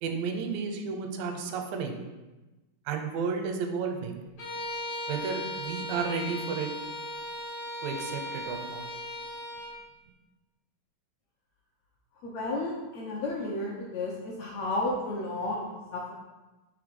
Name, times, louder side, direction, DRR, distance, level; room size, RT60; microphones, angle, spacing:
voice 1, 0.0-2.0 2.9-4.2 5.1-6.7 7.8-8.8, right 5 dB, 85° right, 4 dB, 2.5 m, -32 dB
Bowed string instrument, 4.4-9.8, left 1 dB, 55° left, 1.0 m, -37 dB
voice 2, 12.2-16.1, left 2 dB, 75° left, -3 dB, 1.6 m, -32 dB
5.8 x 3.7 x 5.1 m, 1.1 s
omnidirectional pair, 3.9 m